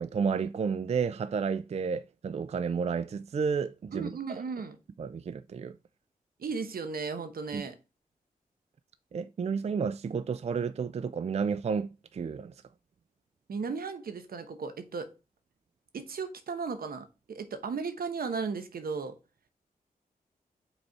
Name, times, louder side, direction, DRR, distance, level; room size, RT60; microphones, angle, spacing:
voice 1, 0.0-4.4 5.0-5.8 7.5-7.6 9.1-12.5, right 6 dB, 45° right, 0.4 m, -31 dB
voice 2, 3.9-4.8 6.4-7.8 13.5-15.1 15.9-19.1, right 5 dB, 80° right, 0.9 m, -35 dB
5.3 x 4.2 x 4.6 m
wide cardioid pair, 80°, 15 cm